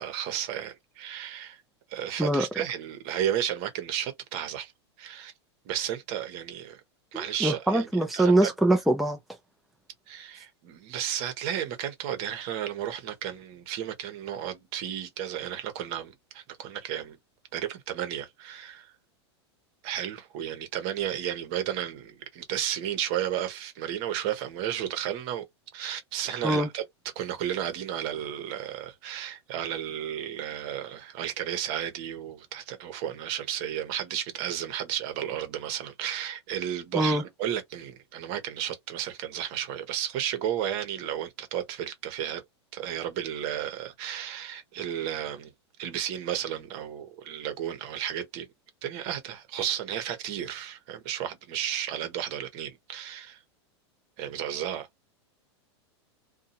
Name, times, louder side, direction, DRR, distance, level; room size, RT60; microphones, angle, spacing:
voice 1, 0.0-1.6 1.9-4.7 5.0-5.3 5.6-6.8 7.1-7.9 8.1-8.5 10.1-17.2 17.5-18.9 19.8-25.4 25.7-26.8 27.1-42.4 42.7-45.5 45.8-48.5 48.8-53.4 54.2-54.9, right 10 dB, 55° right, 1.0 m, -33 dB
voice 2, 7.1-9.2 26.4-26.7 36.9-37.2, right 1 dB, ahead, 0.6 m, -23 dB
2.7 x 2.3 x 2.6 m
hypercardioid pair, 110°, 14 cm